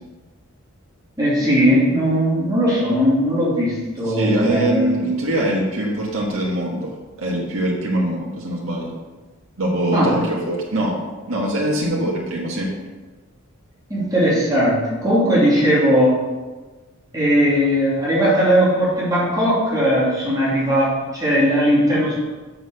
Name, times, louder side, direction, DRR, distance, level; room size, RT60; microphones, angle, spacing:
voice 1, 1.2-4.9 9.9-10.2 13.9-16.2 17.1-22.2, equal, 15° right, -8 dB, 2.9 m, -18 dB
voice 2, 4.1-6.9 7.2-9.0 9.6-11.0 11.3-12.7, right 1 dB, 70° right, -4 dB, 1.6 m, -22 dB
6.7 x 6.5 x 6.5 m, 1.3 s
head